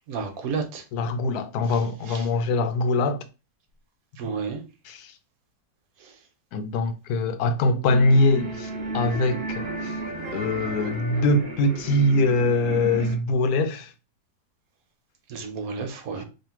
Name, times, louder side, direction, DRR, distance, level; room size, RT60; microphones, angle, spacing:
voice 1, 0.1-0.8 4.2-4.6 15.3-16.2, right 5 dB, 70° right, 1.2 m, -31 dB
voice 2, 0.9-3.2 4.8-5.1 6.5-10.0 10.3-13.9 16.2-16.3, left 2 dB, 80° left, 1.1 m, -23 dB
sound 1, 7.9-13.2, right 2 dB, 45° right, 1.0 m, -33 dB
3.1 x 2.5 x 4.4 m
omnidirectional pair, 1.6 m